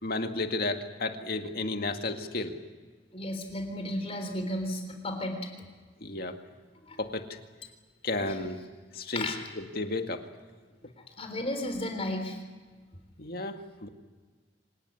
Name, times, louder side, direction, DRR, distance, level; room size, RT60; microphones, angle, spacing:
voice 1, 0.0-2.7 6.0-6.4 7.0-7.4 8.0-8.6 8.9-10.3 13.2-13.9, left 2 dB, 60° left, 5 dB, 2.1 m, -33 dB
voice 2, 3.1-5.5 6.8-7.0 8.2-8.3 9.0-9.4 11.2-12.4, left 1 dB, 35° left, 5 dB, 3.6 m, -34 dB
25.5 x 19.0 x 9.8 m, 1.4 s
head